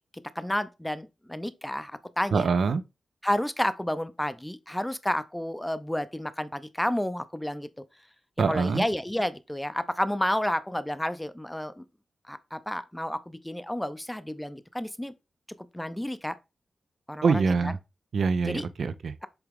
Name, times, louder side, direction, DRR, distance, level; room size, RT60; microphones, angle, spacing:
voice 1, 0.4-1.9 2.2-2.5 3.2-7.7 8.5-11.8 12.3-15.1 15.7-16.4 17.1-17.7 18.4-18.7, left 1 dB, 5° left, 0.5 m, -30 dB
voice 2, 2.3-2.8 8.4-8.8 17.2-17.8 18.1-19.1, right 5 dB, 70° right, 0.5 m, -24 dB
7.9 x 3.5 x 3.5 m
wide cardioid pair, 135°, 0 cm